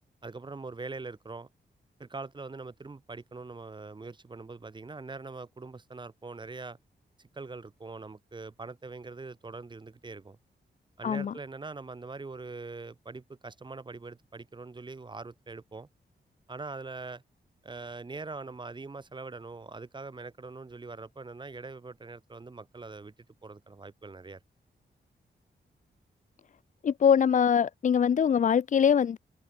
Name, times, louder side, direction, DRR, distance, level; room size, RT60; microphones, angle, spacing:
voice 1, 0.2-1.5 2.0-6.8 7.2-10.4 11.0-15.9 16.5-17.2 17.6-23.1 23.4-24.4, right 3 dB, 25° right, 1.0 m, -42 dB
voice 2, 11.0-11.3 26.8-29.2, left 7 dB, 45° left, 0.4 m, -23 dB
wide cardioid pair, 110°, 18 cm